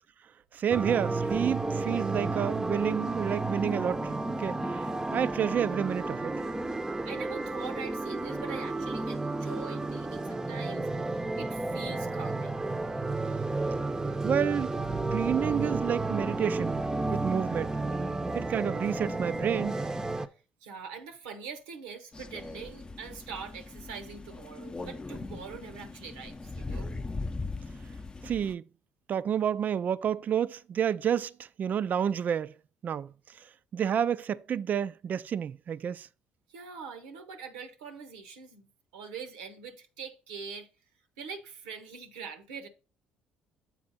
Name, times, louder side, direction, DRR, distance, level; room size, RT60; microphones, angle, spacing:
voice 1, 0.5-6.3 14.2-14.7 15.1-17.8 18.3-19.8 28.2-28.6 29.1-32.5 32.8-33.5 33.7-36.1, right 8 dB, 50° right, 0.3 m, -30 dB
sound 1, 0.7-20.3, right 2 dB, 15° right, 0.6 m, -32 dB
voice 2, 6.8-12.6 20.6-26.9 36.5-40.7 41.2-42.7, right 5 dB, 90° right, 0.8 m, -43 dB
Crow, 22.1-28.5, left 3 dB, 25° left, 0.6 m, -40 dB
7.6 x 4.4 x 4.0 m
hypercardioid pair, 60°, 4 cm